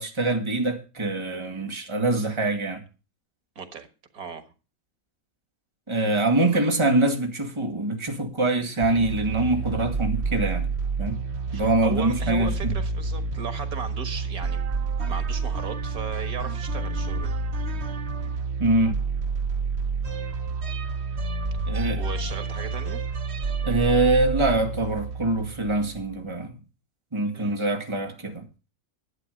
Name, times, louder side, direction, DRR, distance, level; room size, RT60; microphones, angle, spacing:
voice 1, 0.0-2.8 5.9-10.7 11.0-11.2 11.5-12.7 15.0-15.2 18.6-19.0 21.7-22.0 23.6-26.6 27.1-28.5, right 2 dB, 20° right, 1.9 m, -24 dB
voice 2, 3.6-3.9 4.1-4.5 6.4-6.7 11.5-14.6 15.1-17.4 22.0-23.1 27.3-27.5, right 6 dB, 90° right, 2.0 m, -36 dB
sound 1, 8.8-26.1, right 4 dB, 55° right, 1.1 m, -29 dB
11.5 x 8.5 x 6.4 m
omnidirectional pair, 1.5 m